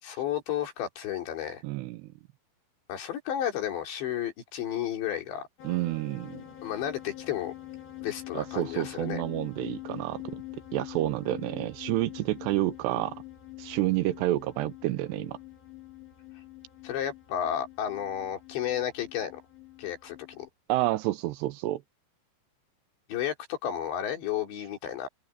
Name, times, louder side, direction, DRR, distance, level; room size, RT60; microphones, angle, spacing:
voice 1, 0.0-1.6 2.9-5.5 6.6-7.5 8.0-9.2 16.8-19.4 19.8-20.5 23.1-25.1, left 10 dB, 75° left, 5.6 m, -32 dB
voice 2, 1.6-2.1 5.6-6.4 8.3-10.4 10.7-13.2 13.6-15.4 20.7-21.8, right 16 dB, 80° right, 2.7 m, -29 dB
sound 1, 5.6-20.5, left 15 dB, 60° left, 4.4 m, -45 dB
open air
omnidirectional pair, 5.2 m